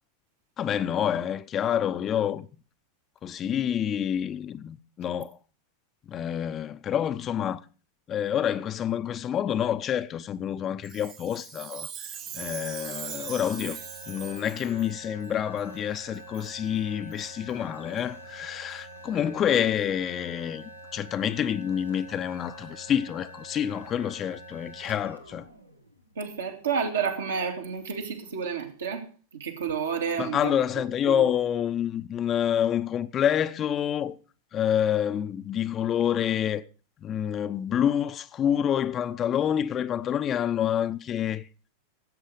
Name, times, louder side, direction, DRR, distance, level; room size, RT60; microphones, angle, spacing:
voice 1, 0.6-2.5 3.2-5.4 6.1-7.6 8.1-12.1 12.3-13.8 14.1-25.5 30.2-34.2 34.5-36.6 37.0-41.5, left 9 dB, 30° left, 0.7 m, -28 dB
Chime, 10.8-14.9 15.6-15.7 16.3-16.5 17.1-17.3 18.0-18.1 18.7-18.8 19.5-19.6, right 9 dB, 40° right, 1.7 m, -41 dB
sound 1, 12.0-26.6, right 1 dB, 85° right, 1.4 m, -46 dB
voice 2, 26.2-29.1 29.3-30.5 31.1-31.3, right 6 dB, 70° right, 2.5 m, -30 dB
17.0 x 8.2 x 5.0 m
figure-of-eight pair, 90°, 0 cm